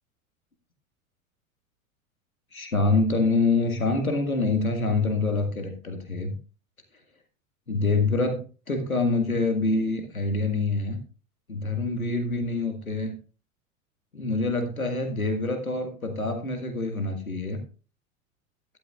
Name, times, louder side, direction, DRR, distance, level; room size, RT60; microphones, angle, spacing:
voice 1, 2.5-6.3 7.7-8.4 8.7-11.0 11.5-13.2 14.1-17.6, left 3 dB, 90° left, 5 dB, 1.7 m, -26 dB
12.5 x 11.5 x 2.3 m, 0.35 s
figure-of-eight pair, 85°, 41 cm